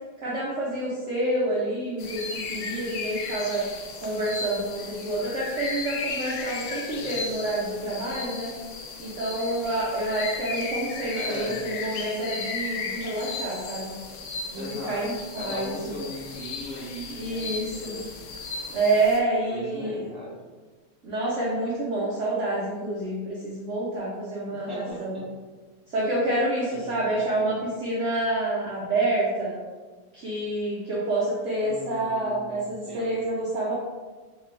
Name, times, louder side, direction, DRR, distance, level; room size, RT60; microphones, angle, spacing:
voice 1, 0.2-3.7 4.0-8.5 9.0-13.9 14.5-15.7 17.1-17.9 18.7-20.1 21.0-25.2 25.9-29.5 30.1-33.7, right 1 dB, 65° right, -7 dB, 0.7 m, -28 dB
sound 1, 2.0-19.2, left 4 dB, 80° left, 0.8 m, -35 dB
voice 2, 6.9-7.2 11.1-11.6 14.2-18.1 19.5-20.4 24.5-25.3 26.7-27.5 31.6-33.2, equal, ahead, -8 dB, 0.6 m, -38 dB
3.3 x 2.9 x 3.1 m, 1.3 s
omnidirectional pair, 2.1 m